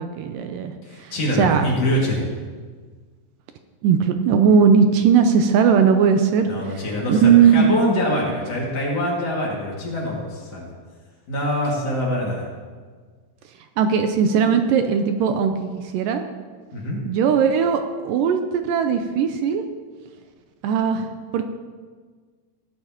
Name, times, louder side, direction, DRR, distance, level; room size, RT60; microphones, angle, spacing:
voice 1, 0.0-0.7 1.0-1.7 3.8-7.7 13.8-16.2 17.0-19.7 20.6-21.4, right 6 dB, 80° right, 7 dB, 2.2 m, -19 dB
voice 2, 0.8-2.2 6.5-10.8 11.3-12.5 16.7-17.0, left 1 dB, 50° left, -4 dB, 3.0 m, -24 dB
17.0 x 11.5 x 2.9 m, 1.5 s
omnidirectional pair, 4.1 m